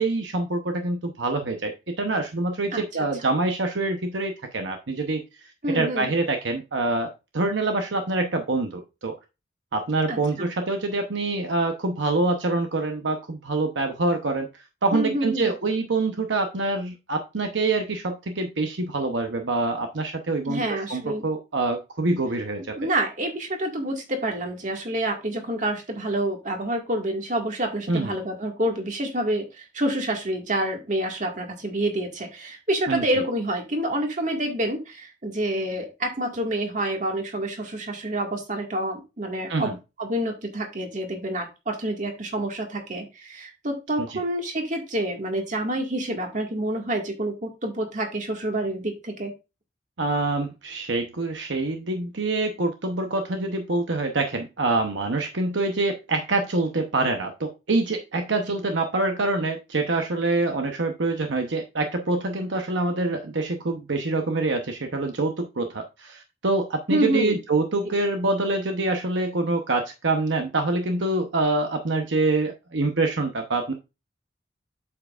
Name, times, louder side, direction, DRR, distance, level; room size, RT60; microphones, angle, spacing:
voice 1, 0.0-5.2 5.7-9.2 9.7-14.5 14.8-22.8 27.9-28.1 32.9-33.0 39.5-39.7 44.0-44.2 50.0-73.7, right 2 dB, 70° right, 5 dB, 0.9 m, -25 dB
voice 2, 5.6-6.1 10.1-10.5 14.9-15.5 20.5-21.3 22.8-39.7 40.0-49.3 66.9-67.4, right 1 dB, 40° right, 3 dB, 1.9 m, -28 dB
8.5 x 7.2 x 2.4 m, 0.27 s
head